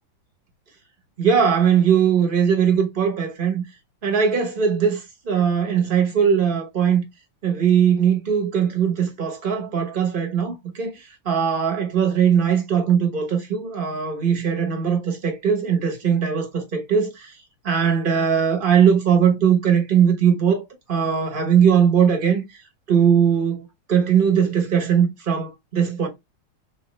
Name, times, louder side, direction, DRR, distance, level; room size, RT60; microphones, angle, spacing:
voice 1, 1.2-3.6 4.0-7.0 7.4-17.3 17.6-22.4 22.9-26.1, right 7 dB, 35° right, 0.9 m, -20 dB
4.5 x 2.9 x 3.1 m
omnidirectional pair, 2.3 m